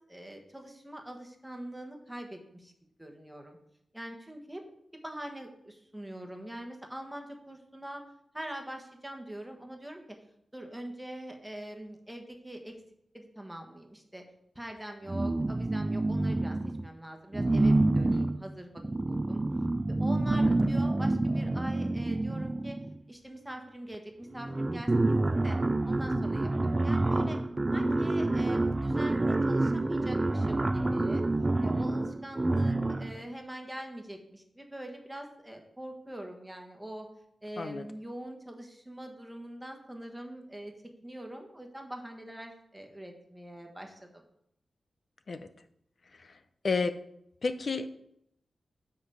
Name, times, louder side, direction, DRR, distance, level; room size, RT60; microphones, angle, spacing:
voice 1, 0.1-2.7 3.0-3.6 3.9-4.6 5.0-8.0 8.3-10.0 10.5-12.8 13.1-14.2 14.5-16.6 16.8-18.8 19.1-19.4 20.0-22.8 23.1-25.6 25.8-27.4 27.7-31.2 31.6-37.1 37.4-40.7 41.0-44.2, right 1 dB, 10° right, 3 dB, 1.4 m, -43 dB
sound 1, 15.1-16.9 17.3-23.0 23.9-24.0 24.3-33.2, right 2 dB, 25° right, 0.3 m, -28 dB
voice 2, 20.3-20.7 37.6-37.8 45.3-45.4 46.6-47.0 47.4-47.9, left 4 dB, 60° left, 10 dB, 0.6 m, -31 dB
7.8 x 5.1 x 5.6 m, 0.74 s
wide cardioid pair, 80°, 0 cm